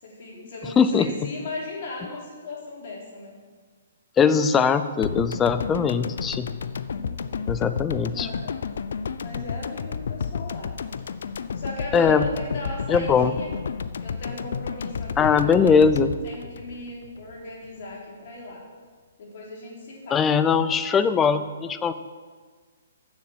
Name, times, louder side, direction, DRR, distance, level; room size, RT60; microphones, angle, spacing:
voice 1, 0.0-3.3 6.9-7.2 8.1-8.6 9.2-10.7 11.5-13.5 14.0-15.7 16.2-18.6 19.2-20.4, left 2 dB, 50° left, -3 dB, 3.6 m, -37 dB
voice 2, 0.8-1.1 4.2-6.5 7.5-8.3 11.9-12.2 12.9-13.3 15.2-16.1 20.1-21.9, left 6 dB, 15° left, 12 dB, 0.5 m, -20 dB
sound 1, 5.0-17.4 17.6-17.7, left 6 dB, 70° left, 0.5 m, -31 dB
7.4 x 7.3 x 7.9 m, 1.5 s
hypercardioid pair, 145°, 0 cm